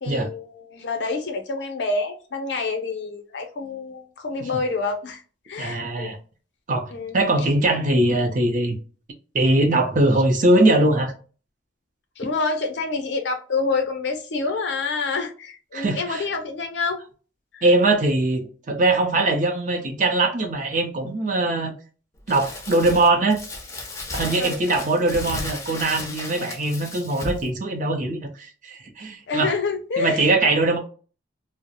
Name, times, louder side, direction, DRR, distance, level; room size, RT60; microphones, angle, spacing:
voice 1, 0.0-5.2 5.5-6.1 6.9-7.2 12.2-17.0 17.5-17.6 24.4-24.5 29.3-30.3, left 4 dB, 65° left, 0.5 m, -27 dB
voice 2, 5.6-6.2 6.7-8.8 9.3-11.1 15.7-16.2 17.6-21.8 22.3-23.4 24.1-29.5 30.0-30.8, right 2 dB, 45° right, 0.5 m, -21 dB
Crumpling crinkling, 22.3-27.5, left 2 dB, 15° left, 0.4 m, -34 dB
2.3 x 2.0 x 2.7 m
head